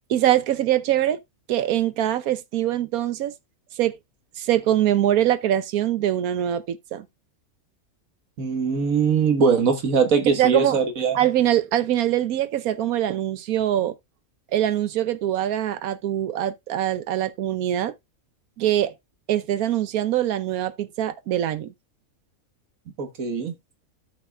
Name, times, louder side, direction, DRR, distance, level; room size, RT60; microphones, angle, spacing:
voice 1, 0.1-1.2 1.5-3.3 3.8-4.0 4.4-7.1 10.4-10.8 11.1-13.9 14.5-17.9 18.6-18.9 19.3-21.7, right 12 dB, 85° right, 1.2 m, -23 dB
voice 2, 8.4-11.2 23.0-23.5, right 5 dB, 70° right, 1.8 m, -21 dB
13.5 x 5.7 x 2.3 m
omnidirectional pair, 1.5 m